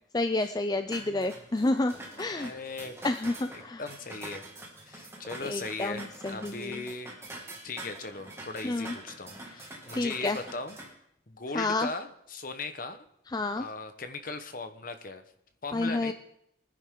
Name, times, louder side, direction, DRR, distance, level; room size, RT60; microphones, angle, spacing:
voice 1, 0.1-2.5 3.0-3.8 5.4-6.8 8.6-8.9 9.9-10.4 11.5-11.9 13.3-13.7 15.7-16.1, left 2 dB, 20° left, 9 dB, 0.4 m, -30 dB
sound 1, 0.9-10.9, right 1 dB, 15° right, 2.1 m, -45 dB
voice 2, 1.0-1.4 2.3-2.9 3.5-4.5 4.8-7.1 7.6-10.8 11.3-13.0 13.6-15.2 15.6-16.1, left 3 dB, 45° left, 8 dB, 1.1 m, -39 dB
22.5 x 10.0 x 3.8 m, 0.76 s
head